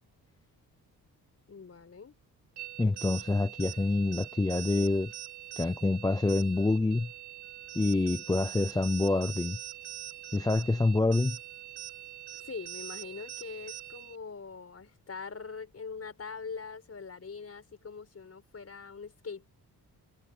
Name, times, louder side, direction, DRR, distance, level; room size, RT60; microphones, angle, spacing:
voice 1, 1.5-2.1 12.3-19.5, left 5 dB, 40° left, 4.9 m, -43 dB
sound 1, 2.6-14.2, right 13 dB, 85° right, 4.4 m, -43 dB
voice 2, 2.8-5.1 5.6-7.1 7.7-9.6 10.3-11.4, left 2 dB, 10° left, 0.5 m, -27 dB
cardioid pair, 95°, 38 cm